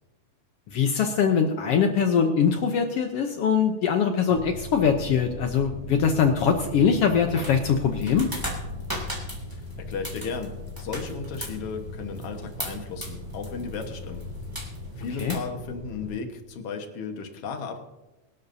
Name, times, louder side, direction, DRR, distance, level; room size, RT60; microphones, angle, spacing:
voice 1, 0.7-8.3 15.2-15.4, left 6 dB, 75° left, 6 dB, 1.4 m, -22 dB
sound 1, 4.3-16.2, left 2 dB, 55° right, 5.1 m, -39 dB
sound 2, 6.4-15.4, right 1 dB, 5° right, 2.2 m, -39 dB
voice 2, 9.5-14.3 15.0-17.8, left 5 dB, 55° left, 5 dB, 2.0 m, -35 dB
22.5 x 12.5 x 2.7 m, 1.1 s
omnidirectional pair, 3.6 m